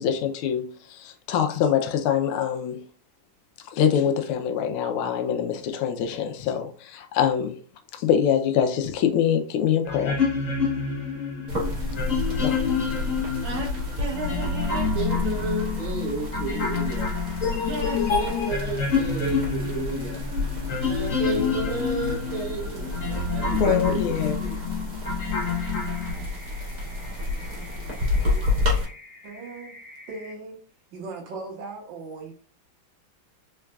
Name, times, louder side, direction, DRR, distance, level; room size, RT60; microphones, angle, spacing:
voice 1, 0.0-2.8 3.7-7.6 7.9-10.2 12.4-12.6 23.6-24.4, left 8 dB, 90° left, 1.5 m, -24 dB
sound 1, 9.9-26.1, left 5 dB, 50° left, 1.1 m, -28 dB
sound 2, 11.5-28.8, left 2 dB, 45° right, 1.7 m, -30 dB
voice 2, 12.8-13.1 13.4-13.7 14.0-25.0, right 4 dB, 85° right, 1.8 m, -33 dB
sound 3, 25.3-30.3, left 2 dB, 70° left, 0.8 m, -47 dB
voice 3, 29.2-29.8 30.1-30.6 30.9-32.3, right 3 dB, 70° right, 1.5 m, -38 dB
3.8 x 3.5 x 2.3 m
omnidirectional pair, 2.3 m